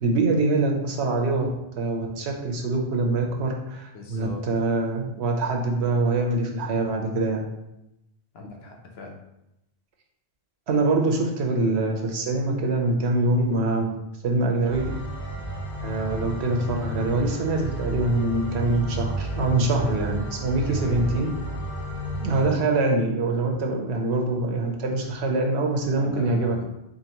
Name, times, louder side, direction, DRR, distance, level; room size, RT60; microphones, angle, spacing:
voice 1, 0.0-1.5 1.7-7.4 10.7-13.9 14.2-14.9 15.8-21.3 22.2-26.6, right 2 dB, 75° right, 2 dB, 1.0 m, -24 dB
voice 2, 3.9-4.7 8.3-9.1 20.6-21.1 26.0-26.6, left 3 dB, 70° left, 1 dB, 1.0 m, -40 dB
sound 1, 14.7-22.5, right 1 dB, 25° left, 1.0 m, -32 dB
3.8 x 3.8 x 2.9 m, 0.87 s
omnidirectional pair, 1.1 m